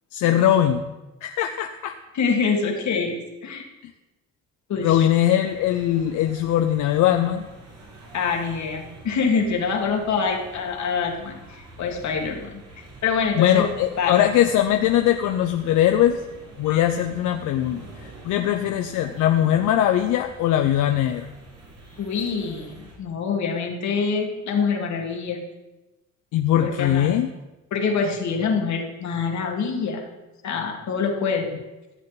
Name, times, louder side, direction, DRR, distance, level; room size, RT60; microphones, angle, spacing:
voice 1, 0.1-0.9 1.2-1.9 4.8-7.4 13.4-16.2 16.6-21.3 26.3-27.3, left 11 dB, 90° left, 6 dB, 0.6 m, -21 dB
voice 2, 2.1-3.2 3.4-3.7 4.7-5.1 8.1-12.6 13.0-13.7 14.0-14.3 22.0-25.4 26.6-27.2 27.7-30.1 30.4-31.5, left 5 dB, 65° left, 2 dB, 2.0 m, -25 dB
sound 1, 5.4-22.9, right 2 dB, 85° right, 4.0 m, -46 dB
14.5 x 7.7 x 4.1 m, 1.1 s
cardioid pair, 90°, 30 cm